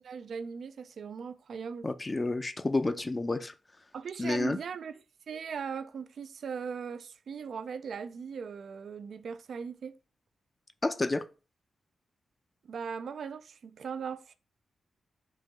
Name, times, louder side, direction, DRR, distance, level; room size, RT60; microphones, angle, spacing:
voice 1, 0.0-1.9 3.9-5.0 5.3-10.0 12.6-14.4, right 6 dB, 70° right, 0.3 m, -39 dB
voice 2, 1.8-3.5 4.2-4.6 10.8-11.2, left 2 dB, 35° left, 0.5 m, -30 dB
3.8 x 2.8 x 3.9 m
supercardioid pair, 45°, 0 cm